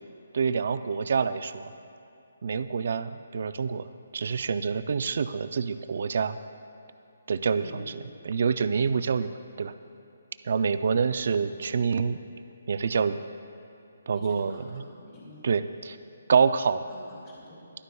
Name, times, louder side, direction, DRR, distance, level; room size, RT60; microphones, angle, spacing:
voice 1, 0.3-1.7 2.4-3.8 4.1-6.4 7.3-7.8 8.2-9.7 10.4-12.2 12.7-13.2 14.1-14.6 15.4-16.0 16.3-16.8, right 5 dB, 45° right, 12 dB, 0.4 m, -26 dB
voice 2, 7.6-8.0 14.1-15.4 16.9-17.6, left 1 dB, 30° left, -6 dB, 2.3 m, -47 dB
21.0 x 11.5 x 2.3 m, 2.8 s
hypercardioid pair, 175°, 0 cm